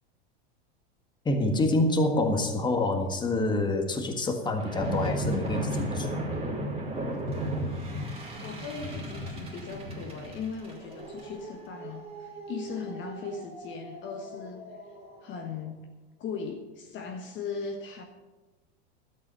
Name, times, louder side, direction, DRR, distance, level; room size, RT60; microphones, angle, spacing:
voice 1, 1.2-6.1, left 2 dB, 15° left, 4 dB, 1.7 m, -27 dB
sound 1, 4.6-15.2, right 1 dB, 20° right, 3.0 m, -35 dB
voice 2, 8.4-14.7 15.2-15.8 16.2-18.0, left 5 dB, 35° left, 3 dB, 1.3 m, -38 dB
12.5 x 8.2 x 6.8 m, 1.2 s
hypercardioid pair, 115°, 32 cm